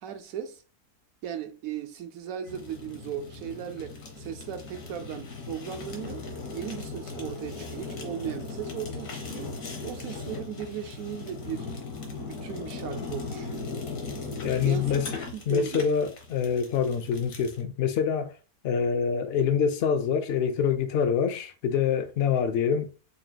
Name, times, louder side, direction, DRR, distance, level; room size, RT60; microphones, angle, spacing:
voice 1, 0.0-0.6 1.2-6.2 6.5-9.6 9.8-11.7 12.2-13.7 14.6-15.0 15.3-15.9, right 9 dB, 70° right, 1.0 m, -37 dB
Fire, 2.5-17.6, left 3 dB, 65° left, 1.4 m, -38 dB
voice 2, 14.4-15.1 15.5-18.4 18.6-22.9, left 7 dB, 90° left, 0.5 m, -25 dB
5.0 x 2.8 x 2.3 m
omnidirectional pair, 1.6 m